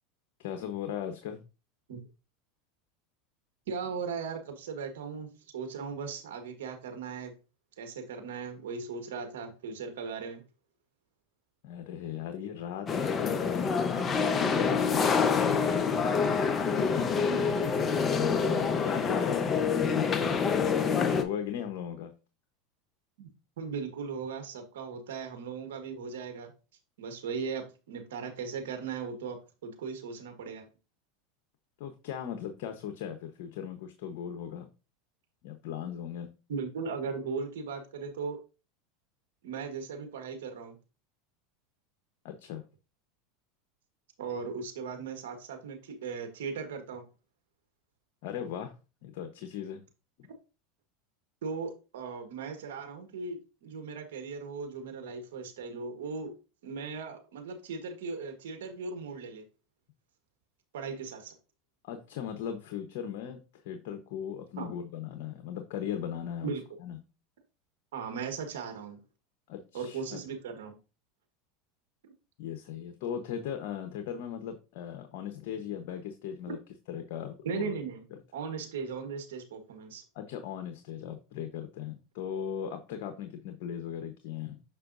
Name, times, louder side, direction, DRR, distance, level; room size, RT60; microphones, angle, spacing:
voice 1, 0.4-1.4 11.6-15.9 16.8-17.1 18.2-20.1 21.0-22.1 31.8-34.7 35.4-36.3 42.2-42.6 48.2-48.7 49.0-49.8 50.2-50.3 61.8-66.5 66.8-67.0 69.5-70.2 72.4-76.6 76.9-77.7 80.1-84.6, left 9 dB, 65° left, 6 dB, 1.0 m, -38 dB
voice 2, 3.7-7.3 7.8-10.4 17.2-17.7 23.2-23.3 23.6-26.5 27.0-30.6 36.5-38.4 39.4-40.8 44.2-47.0 51.4-56.4 56.6-59.4 60.7-61.3 64.6-64.7 66.4-66.6 67.9-69.0 69.7-70.8 76.5-76.6 77.4-78.0 78.3-80.0, right 5 dB, 80° right, 5 dB, 1.4 m, -38 dB
sound 1, 12.9-21.2, left 5 dB, 25° left, 0.9 m, -27 dB
6.7 x 5.5 x 2.6 m, 0.30 s
supercardioid pair, 110°, 0 cm